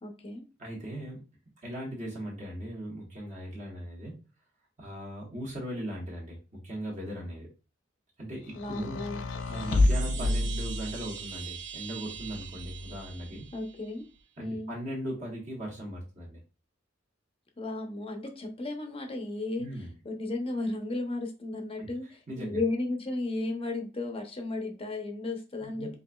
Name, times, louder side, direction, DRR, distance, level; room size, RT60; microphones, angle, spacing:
voice 1, 0.0-0.4 8.5-9.2 10.2-10.3 13.5-14.0 14.4-14.7 17.6-19.7 20.0-26.0, left 2 dB, 30° left, 4 dB, 0.7 m, -34 dB
voice 2, 0.6-1.2 1.6-4.1 4.8-7.5 8.2-9.0 9.5-13.5 14.4-16.4 19.6-19.9 21.8-21.9 22.3-22.6 25.6-25.9, equal, 35° right, -4 dB, 1.4 m, -38 dB
sound 1, 8.5-11.3 12.1-13.1, left 2 dB, 75° left, 0.5 m, -29 dB
Chime, 9.3-14.0, right 8 dB, 65° right, 0.8 m, -43 dB
5.1 x 2.6 x 2.3 m, 0.32 s
head